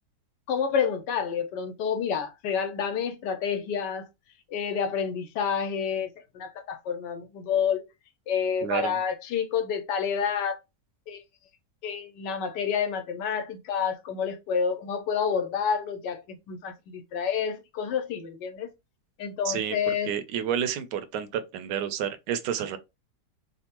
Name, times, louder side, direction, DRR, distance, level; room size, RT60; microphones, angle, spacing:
voice 1, 0.5-4.1 4.5-6.1 6.3-7.8 8.3-10.6 11.1-11.2 11.8-16.2 16.5-18.7 19.2-20.1, left 7 dB, 85° left, 1.3 m, -29 dB
voice 2, 8.6-9.0 19.4-22.8, right 9 dB, 85° right, 1.2 m, -30 dB
3.4 x 2.1 x 2.9 m
omnidirectional pair, 1.8 m